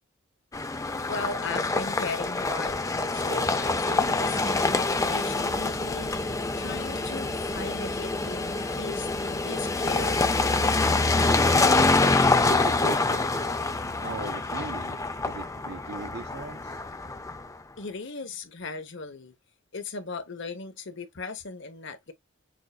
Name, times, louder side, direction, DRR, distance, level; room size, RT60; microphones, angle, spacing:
sound 1, 0.5-17.5, left 3 dB, 15° left, 0.5 m, -26 dB
voice 1, 1.1-10.7 17.8-19.3 19.7-22.1, left 4 dB, 60° left, 1.0 m, -38 dB
voice 2, 12.5-13.7 14.0-16.8, right 4 dB, 50° right, 0.5 m, -39 dB
6.2 x 2.6 x 2.3 m
head